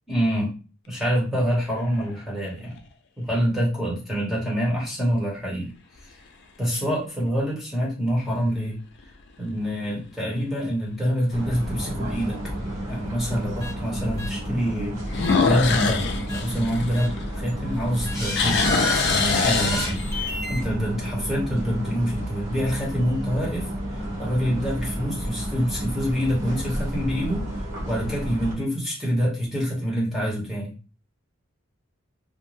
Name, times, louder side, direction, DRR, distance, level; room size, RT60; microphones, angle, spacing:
voice 1, 0.1-0.5 0.9-2.8 3.2-5.7 6.6-8.8 9.4-12.4 12.9-18.7 18.9-23.7 24.2-27.5 27.9-30.7, equal, ahead, -4 dB, 1.0 m, -26 dB
sound 1, 1.4-2.1 2.8-2.9 8.1-8.6 9.0-9.1 9.7-9.8 10.0-10.1 11.7-11.8 15.1-17.6 17.9-20.3, left 5 dB, 60° left, 0.4 m, -24 dB
sound 2, 11.3-28.5, equal, 80° right, 1.2 m, -31 dB
sound 3, 13.6-13.7 14.2-14.3 15.2-15.3 16.3-16.4 16.9-17.1 18.0-20.6, left 1 dB, 20° left, 1.0 m, -29 dB
2.4 x 2.2 x 3.1 m, 0.34 s
head